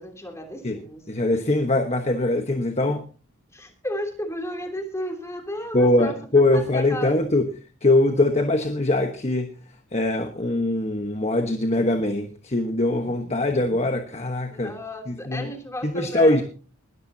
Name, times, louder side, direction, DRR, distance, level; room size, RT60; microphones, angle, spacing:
voice 1, 0.0-1.0 3.5-6.2 6.5-7.2 14.5-16.4, equal, 15° left, 3 dB, 3.2 m, -33 dB
voice 2, 1.1-3.0 5.7-7.5 7.8-9.5 9.9-14.7 15.1-15.5 15.8-16.4, left 2 dB, 30° left, 5 dB, 1.2 m, -22 dB
21.0 x 13.5 x 2.8 m, 0.37 s
head